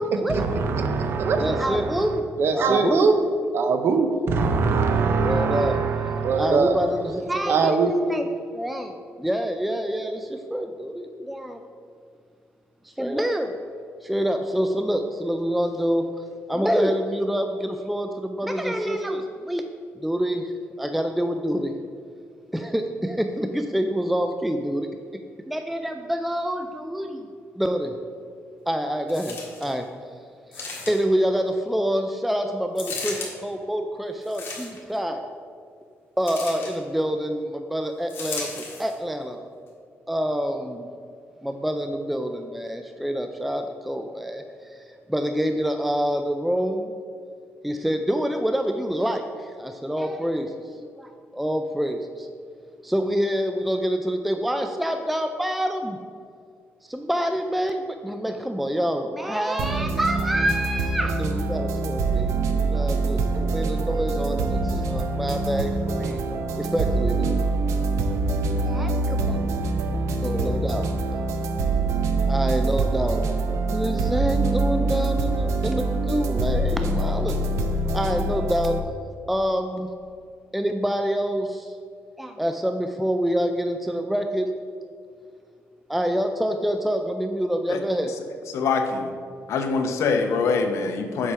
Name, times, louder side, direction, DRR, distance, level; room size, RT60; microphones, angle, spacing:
voice 1, 0.0-2.0 2.4-3.2 3.5-6.8 7.5-7.9, right 4 dB, 50° right, 6 dB, 0.7 m, -22 dB
voice 2, 1.4-2.3 2.5-3.1 5.2-5.8 6.4-11.6 12.8-13.6 14.0-16.1 16.5-19.6 20.0-20.5 20.8-21.7 22.5-24.9 25.5-27.3 27.6-28.0 28.7-29.9 30.5-35.2 36.2-39.4 40.1-40.9 41.4-46.9 47.6-52.3 52.8-56.0 56.8-66.2 66.6-67.4 68.4-69.4 70.2-70.9 72.3-73.2 73.7-77.4 77.9-78.8 79.3-79.9 80.5-81.7 82.2-84.5 85.9-88.1, equal, ahead, 6 dB, 0.3 m, -26 dB
sound 1, 29.1-29.7 30.5-31.2 32.7-33.3 34.2-35.0 36.2-36.8 38.1-38.9 39.7-39.8, left 4 dB, 50° left, 1.6 m, -35 dB
sound 2, 59.6-78.8, right 3 dB, 80° right, 0.6 m, -25 dB
voice 3, 88.5-89.1 89.5-91.3, left 4 dB, 70° left, 5 dB, 0.8 m, -24 dB
7.5 x 4.9 x 5.5 m, 2.2 s
cardioid pair, 170°, 5 cm